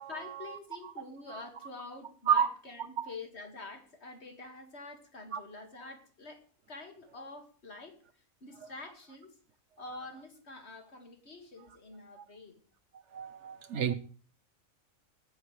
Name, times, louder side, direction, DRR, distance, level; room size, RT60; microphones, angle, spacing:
voice 1, 0.1-8.0 8.4-9.3 9.8-12.6, left 3 dB, 50° left, 2.3 m, -47 dB
voice 2, 13.1-13.9, right 8 dB, 60° right, 1.2 m, -29 dB
19.5 x 9.9 x 3.3 m
omnidirectional pair, 1.4 m